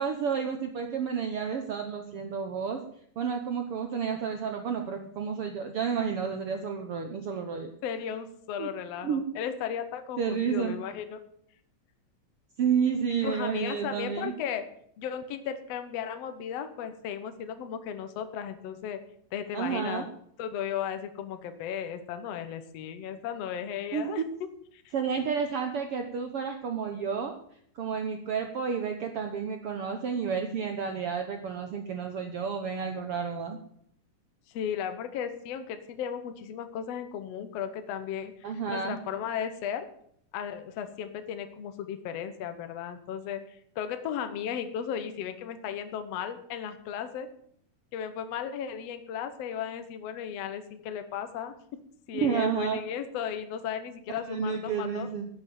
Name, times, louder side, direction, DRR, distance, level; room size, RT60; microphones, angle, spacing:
voice 1, 0.0-2.8 3.2-7.7 8.6-8.7 9.0-9.2 10.2-10.7 12.6-14.3 19.5-20.0 23.9-24.1 24.9-27.3 27.7-33.6 38.4-39.0 52.2-52.8 54.3-55.3, right 6 dB, 75° right, 4 dB, 1.3 m, -30 dB
voice 2, 7.8-11.2 13.2-14.6 15.0-19.0 19.3-20.1 20.4-24.2 24.7-24.9 34.5-39.9 40.3-47.3 47.9-51.5 52.1-55.1, left 8 dB, 65° left, 9 dB, 1.7 m, -35 dB
12.0 x 7.0 x 8.6 m, 0.66 s
omnidirectional pair, 3.9 m